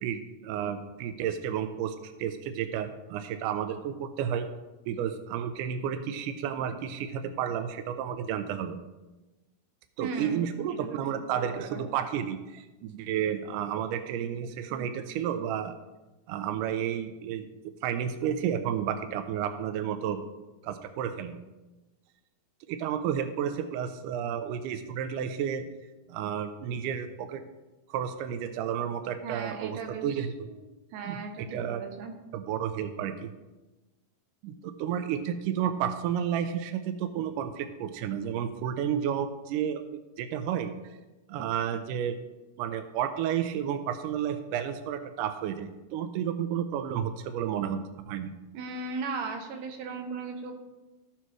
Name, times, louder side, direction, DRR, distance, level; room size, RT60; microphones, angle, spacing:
voice 1, 0.0-4.5 4.9-8.8 10.0-15.8 16.3-17.5 17.8-20.2 20.6-21.3 22.7-25.7 26.1-27.4 27.9-30.3 31.1-31.8 32.3-33.3 34.4-39.8 40.2-40.7 41.3-42.2 42.6-47.8 48.1-48.3, right 9 dB, 85° right, 9 dB, 1.8 m, -31 dB
voice 2, 10.0-11.9 29.2-30.7 30.9-32.1 48.5-50.5, right 4 dB, 70° right, 4 dB, 2.4 m, -37 dB
16.0 x 5.6 x 3.1 m, 1.1 s
omnidirectional pair, 4.3 m